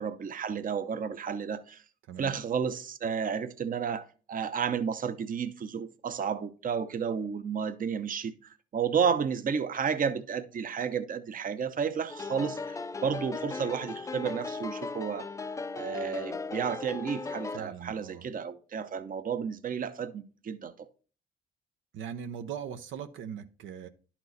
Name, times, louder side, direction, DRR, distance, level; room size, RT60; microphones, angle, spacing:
voice 1, 0.0-1.8 2.2-8.3 8.7-15.3 15.7-20.9, right 6 dB, 45° right, 0.7 m, -32 dB
sound 1, 12.1-17.6, left 3 dB, 15° left, 0.4 m, -37 dB
voice 2, 17.5-18.3 21.9-23.9, right 8 dB, 80° right, 0.7 m, -40 dB
11.0 x 4.5 x 4.0 m
cardioid pair, 90°, 20 cm